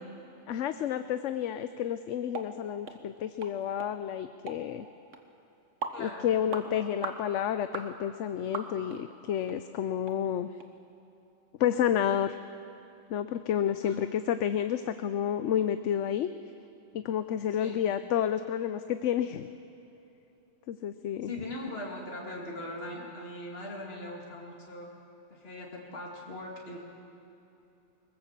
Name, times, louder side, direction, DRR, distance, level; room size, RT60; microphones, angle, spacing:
voice 1, 0.5-4.9 6.0-10.5 11.6-12.4 13.1-16.3 16.9-19.5 20.7-21.3, left 9 dB, 75° left, 11 dB, 1.0 m, -30 dB
sound 1, 2.3-2.5 2.9-3.0 3.4-3.5 3.8-3.9 4.5-4.6 5.1-5.2 5.8-6.0 6.5-6.7 7.0-7.2 7.7-7.9 8.5-9.0 9.5-9.6 10.1-10.2 10.6-10.7, right 4 dB, 80° right, 1.8 m, -37 dB
voice 2, 5.9-6.3 13.8-14.0 17.6-17.8 21.2-24.9 25.3-26.8, left 1 dB, 55° left, -1 dB, 2.6 m, -40 dB
22.5 x 20.0 x 7.4 m, 2.9 s
omnidirectional pair, 1.3 m